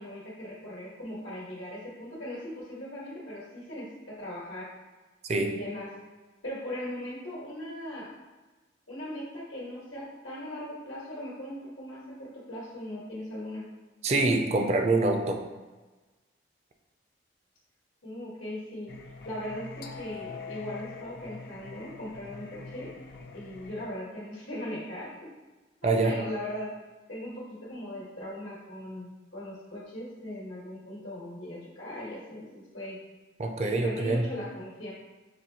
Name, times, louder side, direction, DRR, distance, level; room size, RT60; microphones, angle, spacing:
voice 1, 0.0-4.7 5.3-5.9 6.4-8.1 8.9-13.7 18.0-19.0 19.2-22.9 23.3-25.3 25.8-26.7 27.1-33.0 33.6-34.9, left 1 dB, 85° left, -7 dB, 1.2 m, -39 dB
voice 2, 14.0-15.4 25.8-26.1 33.4-34.3, right 2 dB, 35° right, 4 dB, 0.4 m, -25 dB
Singing, 18.9-23.8, left 4 dB, 55° left, 0.4 m, -44 dB
6.0 x 2.6 x 2.7 m, 1.2 s
head